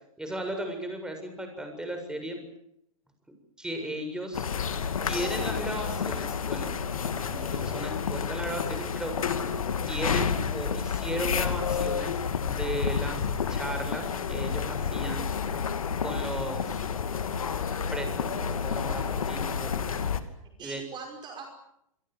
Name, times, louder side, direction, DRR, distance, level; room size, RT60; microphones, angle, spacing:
voice 1, 0.2-2.4 3.6-4.5 5.1-6.8 7.1-9.5 9.9-15.3 16.0-16.9 17.9-19.0 19.3-19.9 20.6-20.8, right 1 dB, 5° right, 5 dB, 7.2 m, -36 dB
sound 1, 4.3-20.2, left 6 dB, 80° left, 2.7 m, -30 dB
voice 2, 19.0-19.5 20.6-21.5, right 5 dB, 25° right, 4 dB, 5.4 m, -43 dB
27.0 x 23.0 x 8.1 m, 0.78 s
hypercardioid pair, 120°, 18 cm